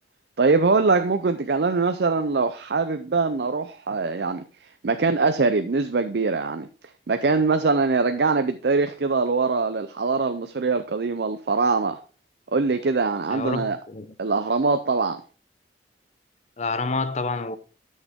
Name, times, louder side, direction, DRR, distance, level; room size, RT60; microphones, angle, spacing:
voice 1, 0.4-4.4 4.8-6.7 7.1-12.0 12.5-13.8 14.2-15.2, right 4 dB, 65° right, 0.5 m, -23 dB
voice 2, 13.3-14.1 16.6-17.6, left 3 dB, 40° left, 0.6 m, -28 dB
10.0 x 6.5 x 3.6 m
head